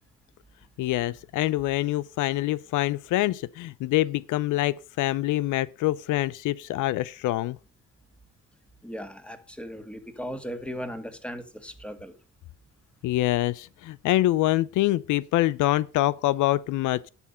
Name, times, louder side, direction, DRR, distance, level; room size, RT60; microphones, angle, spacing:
voice 1, 0.8-7.6 13.0-17.1, left 16 dB, 80° left, 0.5 m, -25 dB
voice 2, 8.8-12.1, equal, 5° left, 1.9 m, -37 dB
11.0 x 6.9 x 5.6 m
cardioid pair, 90°, 30 cm